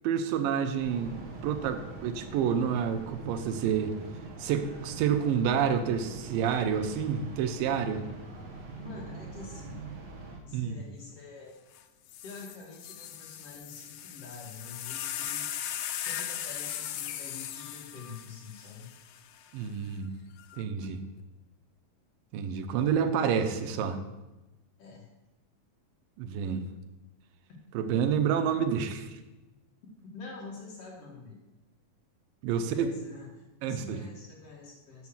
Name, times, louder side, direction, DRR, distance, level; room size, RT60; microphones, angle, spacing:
voice 1, 0.0-1.1 1.4-4.0 4.4-8.0 10.5-10.8 19.5-20.1 20.6-21.0 22.3-24.0 26.2-26.6 27.7-29.1 32.4-32.9 33.6-34.0, right 7 dB, 90° right, 8 dB, 2.5 m, -28 dB
sound 1, 0.8-10.4, right 3 dB, 60° right, 1.1 m, -44 dB
voice 2, 8.8-9.8 10.4-11.6 12.2-15.5 16.1-18.9 24.8-25.1 30.1-31.4 32.5-35.1, left 4 dB, 55° left, -1 dB, 2.0 m, -46 dB
sound 2, 11.7-11.8 12.1-19.5 20.4-20.8, left 10 dB, 80° left, 2.2 m, -38 dB
6.7 x 6.1 x 7.2 m, 1.0 s
omnidirectional pair, 3.9 m